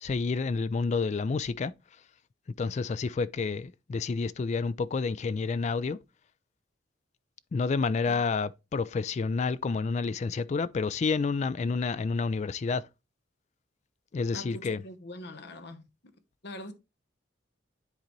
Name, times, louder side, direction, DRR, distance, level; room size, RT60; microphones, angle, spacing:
voice 1, 0.0-1.7 2.6-6.0 7.5-12.8 14.1-14.8, left 4 dB, 35° left, 0.3 m, -29 dB
voice 2, 14.3-15.8 16.4-16.7, left 1 dB, 55° left, 0.9 m, -42 dB
10.0 x 3.9 x 3.0 m
head